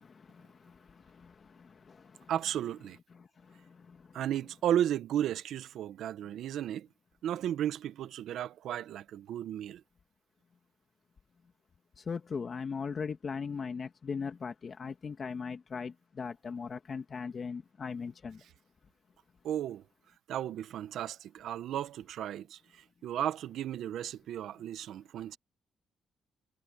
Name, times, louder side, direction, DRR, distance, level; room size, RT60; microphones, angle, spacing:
voice 1, 0.0-2.3 3.1-4.2 12.0-18.4, left 5 dB, 40° left, 2.3 m, -40 dB
voice 2, 2.3-3.0 4.1-6.9 7.2-9.8 19.4-19.8 20.3-25.4, right 11 dB, 75° right, 1.0 m, -34 dB
cardioid pair, 90°, 0 cm